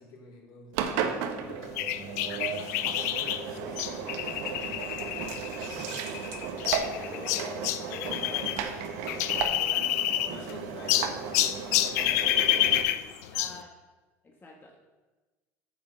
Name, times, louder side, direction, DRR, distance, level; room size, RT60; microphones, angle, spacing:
voice 1, 0.0-6.2 8.2-8.7 9.4-13.4, left 3 dB, 55° left, -3 dB, 3.9 m, -48 dB
Engine, 0.7-12.8, right 7 dB, 75° right, 1.2 m, -35 dB
sound 1, 1.8-8.6 8.8-10.5 10.9-13.6, left 13 dB, 80° left, 0.6 m, -29 dB
voice 2, 6.6-8.9 9.3-9.8 13.3-13.7 14.2-14.8, left 2 dB, 25° left, 0 dB, 1.6 m, -45 dB
9.5 x 6.1 x 6.7 m, 1.2 s
hypercardioid pair, 80°, 9 cm